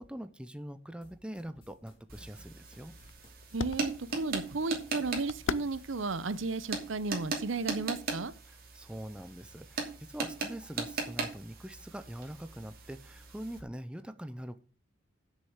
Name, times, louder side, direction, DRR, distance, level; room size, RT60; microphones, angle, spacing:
voice 1, 0.0-2.9 8.5-14.6, right 1 dB, 5° right, 0.7 m, -43 dB
sound 1, 1.0-6.4, left 1 dB, 30° left, 3.2 m, -59 dB
sound 2, 1.4-7.7, left 5 dB, 75° left, 0.5 m, -44 dB
sound 3, 2.1-13.6, right 3 dB, 50° right, 2.7 m, -39 dB
voice 2, 3.5-8.3, right 3 dB, 75° right, 0.8 m, -34 dB
7.8 x 6.7 x 8.0 m
head